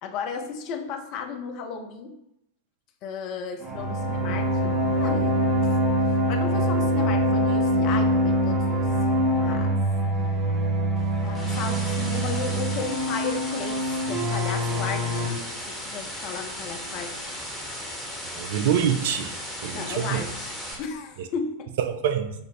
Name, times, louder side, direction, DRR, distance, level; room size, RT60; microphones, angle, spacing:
voice 1, 0.0-2.2 3.0-9.1 9.4-9.8 11.2-17.4 19.7-21.7, left 5 dB, 40° left, 5 dB, 0.5 m, -35 dB
sound 1, 3.6-15.3, equal, 20° right, 0.6 m, -24 dB
sound 2, 11.0-20.7, equal, ahead, 0.9 m, -36 dB
voice 2, 18.3-19.3 19.6-20.2 21.8-22.3, right 8 dB, 55° right, 8 dB, 0.3 m, -25 dB
3.7 x 2.0 x 3.9 m, 0.81 s
figure-of-eight pair, 90°, 0 cm